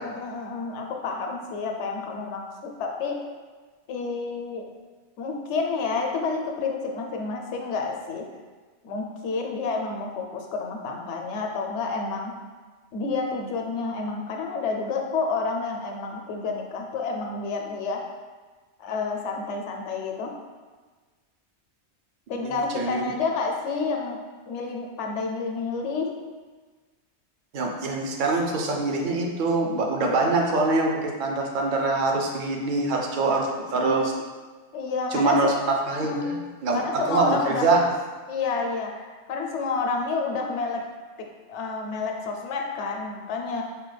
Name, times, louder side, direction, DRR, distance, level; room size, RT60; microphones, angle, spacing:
voice 1, 0.0-3.2 3.9-4.6 5.2-8.2 8.8-12.3 12.9-18.0 18.8-20.3 22.3-24.2 24.5-26.1 33.3-33.5 33.8-34.1 34.7-35.5 35.9-36.3 36.7-37.7 38.3-40.8 41.5-43.6, left 4 dB, 80° left, 2 dB, 0.9 m, -29 dB
voice 2, 22.3-23.1 27.5-34.1 35.1-35.5 35.9-37.8, right 3 dB, 55° right, 0 dB, 0.6 m, -24 dB
4.8 x 2.2 x 3.2 m, 1.4 s
omnidirectional pair, 1.2 m